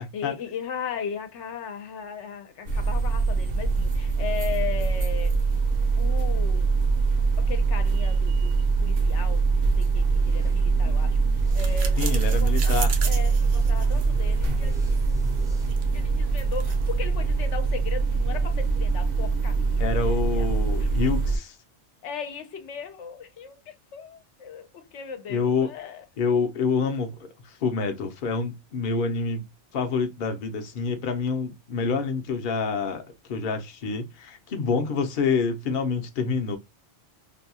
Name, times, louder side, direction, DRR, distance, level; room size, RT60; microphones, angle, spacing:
voice 1, 0.0-5.4 6.0-6.7 7.4-14.9 15.9-20.5 20.7-21.0 22.0-26.0, left 7 dB, 80° left, 0.9 m, -37 dB
sound 1, 2.7-21.4, right 4 dB, 60° right, 0.8 m, -23 dB
sound 2, 10.2-15.7, left 1 dB, 5° right, 0.4 m, -44 dB
sound 3, 11.5-17.0, right 4 dB, 85° right, 1.0 m, -37 dB
voice 2, 12.0-12.9 19.8-21.6 25.3-25.7 26.2-29.4 29.7-33.0 33.3-36.6, left 5 dB, 55° left, 0.7 m, -27 dB
2.6 x 2.2 x 2.7 m
omnidirectional pair, 1.2 m